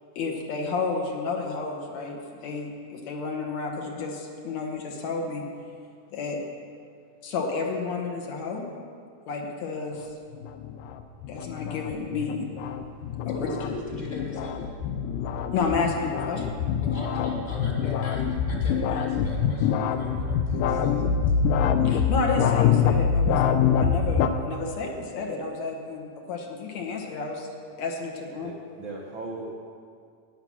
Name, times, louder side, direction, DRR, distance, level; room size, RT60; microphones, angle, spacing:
voice 1, 0.2-5.4 6.1-6.4 7.2-8.8 9.3-10.1 11.3-12.5 13.3-13.4 15.5-16.6 21.8-27.5 27.8-28.5, left 4 dB, 65° left, 1 dB, 2.2 m, -31 dB
sound 1, 10.3-24.3, left 7 dB, 85° left, 2.2 m, -25 dB
voice 2, 13.3-14.7 16.8-21.0, left 1 dB, 20° left, -2 dB, 1.1 m, -40 dB
voice 3, 28.4-29.5, right 2 dB, 80° right, -1 dB, 1.1 m, -37 dB
11.5 x 9.8 x 6.1 m, 2.2 s
omnidirectional pair, 3.8 m